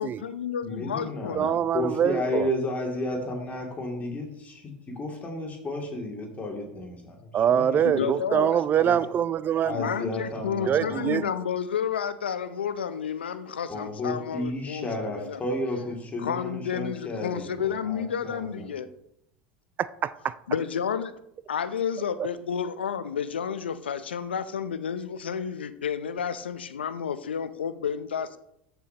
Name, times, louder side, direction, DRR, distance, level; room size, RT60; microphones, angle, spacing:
voice 1, 0.0-1.6 7.8-8.6 9.7-15.4 16.2-18.9 20.5-21.1 21.5-28.4, left 7 dB, 90° left, 14 dB, 0.6 m, -31 dB
voice 2, 0.6-8.1 8.8-9.0 9.6-11.1 13.7-18.6, left 1 dB, 25° left, 1 dB, 2.5 m, -33 dB
voice 3, 1.3-2.5 7.3-9.8 10.7-11.3 19.8-20.3, right 9 dB, 35° right, 18 dB, 0.4 m, -24 dB
14.0 x 7.0 x 2.9 m, 0.79 s
hypercardioid pair, 90°, 6 cm